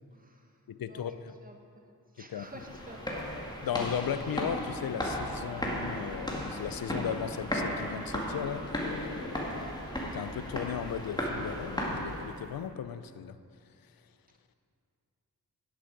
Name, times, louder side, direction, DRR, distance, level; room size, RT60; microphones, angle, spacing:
voice 1, 0.1-0.5 0.8-1.1 1.4-1.6 2.1-3.0 9.4-9.8, right 1 dB, 25° right, 3 dB, 1.3 m, -50 dB
voice 2, 0.7-1.4 2.2-2.6 3.6-9.6 10.0-13.4, left 9 dB, 65° left, 13 dB, 0.6 m, -36 dB
sound 1, 2.5-12.5, equal, 10° left, 2.1 m, -35 dB
10.5 x 8.4 x 5.2 m, 2.4 s
cardioid pair, 45°, 38 cm